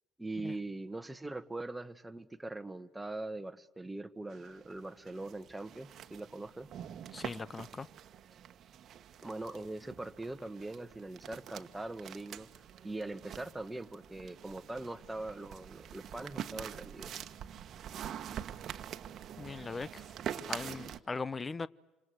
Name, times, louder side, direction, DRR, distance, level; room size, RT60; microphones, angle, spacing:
voice 1, 0.2-6.7 9.2-12.5 12.8-17.1, right 2 dB, 10° right, 1.6 m, -42 dB
sound 1, 4.3-21.0, right 9 dB, 45° right, 1.4 m, -46 dB
voice 2, 7.1-7.9 19.4-20.1 20.5-21.7, left 4 dB, 25° left, 0.9 m, -39 dB
27.5 x 26.5 x 8.0 m
hypercardioid pair, 60°, 0 cm